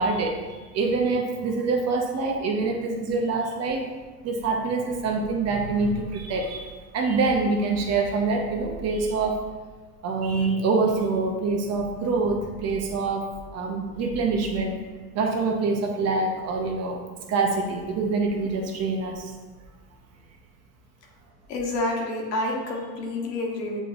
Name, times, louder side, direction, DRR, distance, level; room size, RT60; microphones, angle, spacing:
voice 1, 0.0-3.8 4.2-9.4 10.0-14.8 15.1-17.0 17.3-19.3, right 3 dB, 35° right, 2 dB, 0.6 m, -25 dB
voice 2, 21.5-23.8, left 2 dB, 85° left, 0 dB, 1.2 m, -28 dB
6.8 x 3.0 x 2.4 m, 1.4 s
supercardioid pair, 110°, 48 cm